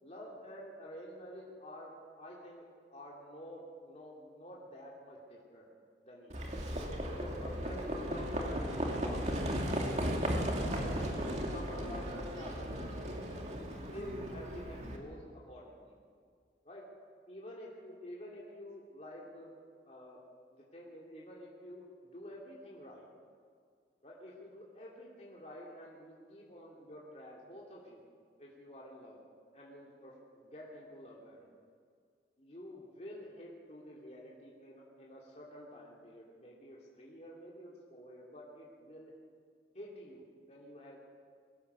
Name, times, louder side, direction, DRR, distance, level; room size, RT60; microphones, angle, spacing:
voice 1, 0.0-2.6 2.9-5.7 6.0-6.7 7.1-10.3 10.6-13.5 13.9-15.9 16.6-16.9 17.3-19.5 19.8-20.2 20.5-23.1 24.0-28.0 28.4-29.2 29.5-31.5 32.4-39.1 39.7-41.0, equal, 40° left, -4 dB, 3.0 m, -49 dB
Livestock farm animals working animals, 6.3-15.0, equal, 40° right, 2.7 m, -36 dB
23.0 x 17.0 x 7.0 m, 2.1 s
head